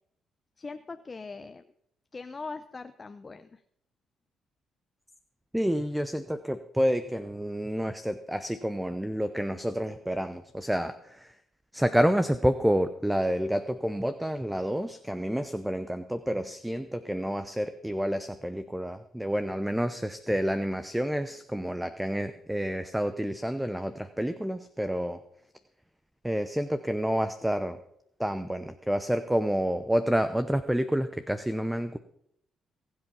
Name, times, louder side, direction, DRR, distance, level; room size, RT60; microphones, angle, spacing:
voice 1, 0.6-1.7 2.1-3.6, left 4 dB, 30° left, 10 dB, 0.6 m, -41 dB
voice 2, 5.5-11.3 11.7-25.2 26.2-27.8 28.2-32.0, equal, 5° right, 11 dB, 0.8 m, -29 dB
20.0 x 8.0 x 5.6 m, 0.74 s
cardioid pair, 90°, 0 cm